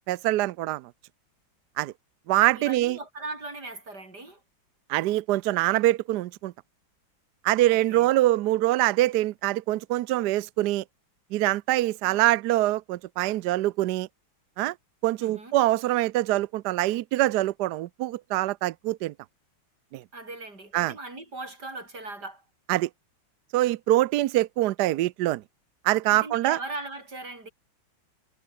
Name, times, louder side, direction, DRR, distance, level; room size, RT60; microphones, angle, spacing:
voice 1, 0.1-0.9 1.8-1.9 2.3-3.0 4.9-6.5 7.4-10.8 11.3-14.1 14.6-14.7 15.0-19.1 19.9-20.0 20.7-20.9 22.7-22.9 23.5-25.4 25.8-26.6, right 16 dB, 70° right, 1.0 m, -24 dB
voice 2, 2.6-4.4 7.7-8.1 12.0-12.3 15.2-15.6 20.1-22.4 26.1-27.5, right 2 dB, 50° right, 7.1 m, -39 dB
omnidirectional pair, 2.2 m